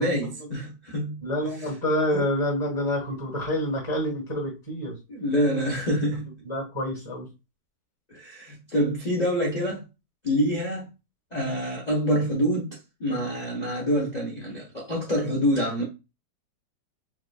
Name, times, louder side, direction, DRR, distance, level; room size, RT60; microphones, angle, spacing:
voice 1, 0.0-1.2 1.6-1.7 2.1-2.2 5.1-6.3 8.1-9.8 10.2-10.9 11.3-15.8, equal, 50° left, 0.5 m, -26 dB
voice 2, 1.2-5.0 6.4-7.3, left 1 dB, 15° left, 1.3 m, -27 dB
4.6 x 2.4 x 2.3 m
omnidirectional pair, 2.0 m